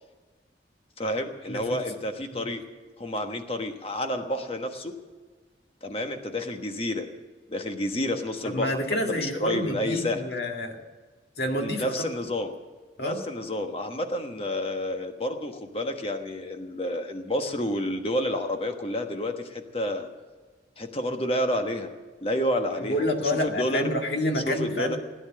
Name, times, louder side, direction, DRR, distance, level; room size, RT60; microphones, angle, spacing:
voice 1, 1.0-2.6 3.0-4.9 5.8-7.0 7.5-10.2 11.6-12.5 13.0-20.1 20.8-21.9 22.2-23.9 24.3-25.0, left 1 dB, 35° left, 6 dB, 1.3 m, -30 dB
voice 2, 1.5-1.8 2.3-2.5 8.4-10.8 11.4-12.1 13.0-13.2 22.8-25.0, left 1 dB, 65° left, 3 dB, 2.0 m, -28 dB
17.0 x 9.9 x 7.5 m, 1.4 s
head